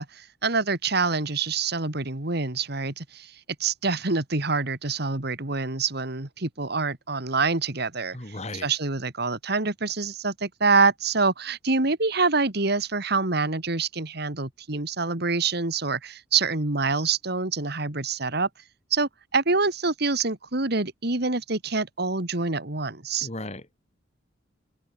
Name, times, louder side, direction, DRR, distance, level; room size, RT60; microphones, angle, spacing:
voice 1, 0.0-3.3 3.6-8.4 8.6-18.5 18.9-23.3, right 4 dB, 60° right, 2.3 m, -26 dB
voice 2, 8.1-8.7 23.2-23.8, left 2 dB, 35° left, 4.8 m, -36 dB
head